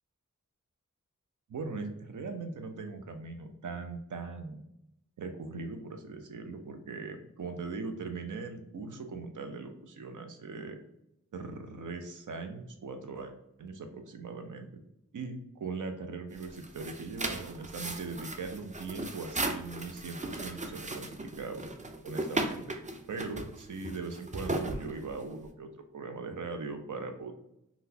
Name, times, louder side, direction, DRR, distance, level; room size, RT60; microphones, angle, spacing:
voice 1, 1.5-4.6 5.2-10.8 11.3-13.3 13.6-14.8 15.1-21.7 22.0-22.8 23.1-27.3, right 4 dB, 80° right, 6 dB, 0.6 m, -40 dB
sound 1, 16.3-25.4, right 2 dB, 25° right, 0.5 m, -37 dB
3.7 x 2.3 x 2.7 m, 0.82 s
wide cardioid pair, 55°, 30 cm